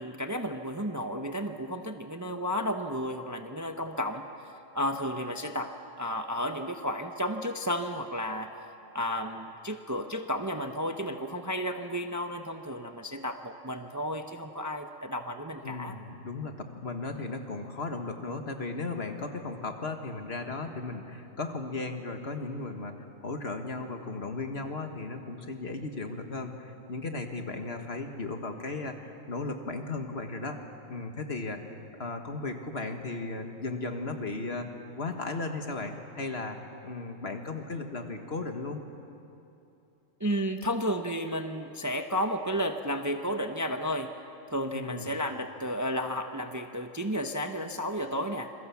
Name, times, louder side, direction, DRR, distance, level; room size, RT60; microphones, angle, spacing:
voice 1, 0.0-8.5 8.9-16.0 40.2-44.1 44.5-48.5, equal, 15° right, 6 dB, 0.8 m, -32 dB
voice 2, 15.6-30.6 30.9-31.6 32.0-34.7 35.0-38.8 44.7-45.1, left 3 dB, 55° left, 5 dB, 1.9 m, -36 dB
27.5 x 23.0 x 7.2 m, 2.8 s
omnidirectional pair, 1.3 m